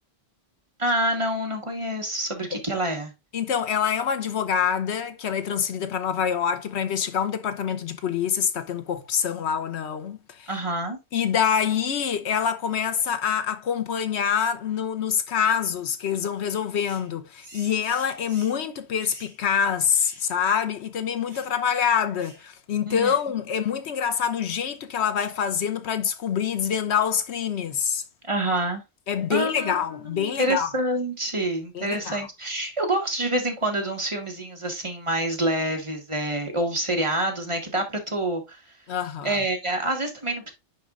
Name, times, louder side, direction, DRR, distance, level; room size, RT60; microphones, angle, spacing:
voice 1, 0.8-3.1 10.5-11.0 22.9-23.1 28.2-28.8 29.3-38.6 39.2-40.5, right 1 dB, 25° right, 1.4 m, -27 dB
voice 2, 3.3-10.5 11.1-28.0 29.1-30.7 31.7-32.3 38.9-39.4, left 8 dB, 75° left, 1.0 m, -26 dB
sound 1, 16.8-17.1 17.4-18.6 19.0-19.4 19.9-20.3 20.5-20.6 21.3-21.5 22.2-22.4 23.0-23.3, right 2 dB, 65° right, 3.0 m, -48 dB
10.0 x 4.3 x 2.4 m
omnidirectional pair, 1.2 m